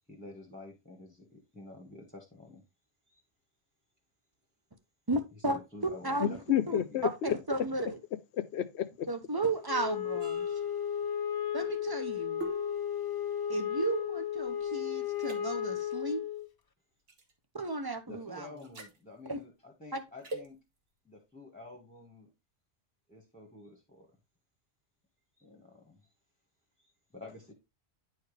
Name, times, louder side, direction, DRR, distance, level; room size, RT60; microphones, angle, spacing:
voice 1, 0.1-2.6 3.1-3.2 5.3-6.4 6.6-7.0 7.3-7.4 7.7-7.8 18.1-20.6 21.0-22.3 23.1-24.1 25.4-26.1 26.8-27.5, left 2 dB, 5° left, 1.5 m, -50 dB
voice 2, 5.1-5.6 6.0-8.0 9.1-10.5 11.5-12.5 13.5-16.2 17.5-18.5 19.3-19.4 19.9-20.0, right 2 dB, 25° right, 0.7 m, -34 dB
voice 3, 6.2-7.3 8.5-9.1, left 11 dB, 80° left, 1.0 m, -30 dB
Wind instrument woodwind instrument, 9.7-16.5, left 9 dB, 35° left, 0.4 m, -34 dB
sound 1, 10.2-14.7 15.1-15.4 17.1-17.3 18.6-19.0 20.2-20.5, right 2 dB, 65° right, 1.5 m, -45 dB
9.6 x 4.6 x 3.2 m
omnidirectional pair, 1.1 m